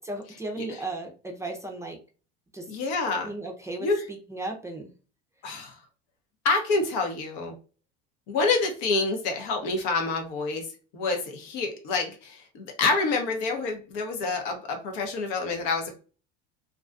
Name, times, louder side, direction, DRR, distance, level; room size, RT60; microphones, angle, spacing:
voice 1, 0.0-2.0 2.5-2.7 3.2-4.9, right 2 dB, 10° right, 1 dB, 0.5 m, -35 dB
voice 2, 2.7-3.3 3.8-4.0 5.4-5.8 6.4-7.5 8.3-10.7 10.9-16.0, left 3 dB, 70° left, 4 dB, 0.8 m, -27 dB
2.4 x 2.2 x 2.4 m, 0.36 s
hypercardioid pair, 90°, 29 cm